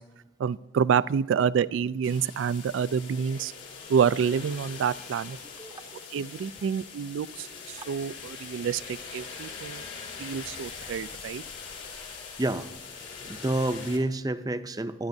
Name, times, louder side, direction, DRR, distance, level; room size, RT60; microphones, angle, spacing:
voice 1, 0.4-3.5 3.9-5.4 6.1-9.8 10.2-11.4, right 7 dB, 85° right, 18 dB, 0.3 m, -28 dB
sound 1, 2.0-14.0, left 5 dB, 75° left, 3.4 m, -42 dB
voice 2, 13.3-15.1, right 1 dB, 20° right, 10 dB, 0.5 m, -29 dB
24.5 x 10.5 x 2.7 m, 1.1 s
head